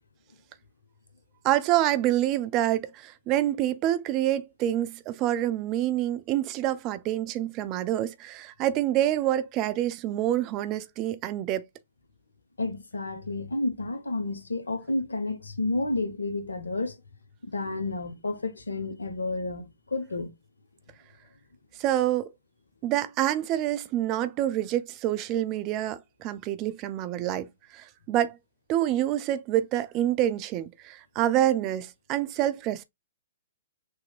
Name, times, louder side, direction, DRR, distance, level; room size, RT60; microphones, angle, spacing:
voice 1, 1.4-11.6 21.8-22.3 22.8-28.4 28.7-32.8, right 13 dB, 30° right, 0.5 m, -27 dB
voice 2, 12.6-17.0 17.4-20.3, left 2 dB, 75° left, 1.0 m, -31 dB
6.1 x 2.9 x 2.3 m
figure-of-eight pair, 115°, 0 cm